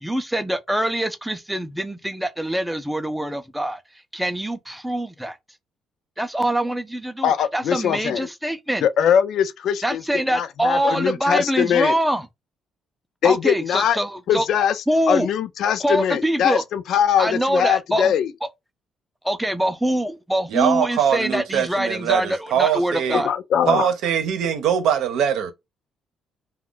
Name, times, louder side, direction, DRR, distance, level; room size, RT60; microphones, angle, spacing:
voice 1, 0.0-3.8 4.1-5.4 6.2-8.9 9.8-12.2 13.2-14.5 14.9-15.3 15.8-16.6 17.2-18.1 19.2-23.3, right 1 dB, 5° right, 0.4 m, -24 dB
voice 2, 7.2-8.3 8.8-12.0 13.2-14.0 14.3-18.3 23.1-23.9, left 8 dB, 70° left, 0.4 m, -21 dB
voice 3, 20.5-23.2 23.7-25.5, right 9 dB, 80° right, 0.7 m, -22 dB
2.5 x 2.2 x 3.6 m
cardioid pair, 115°, 0 cm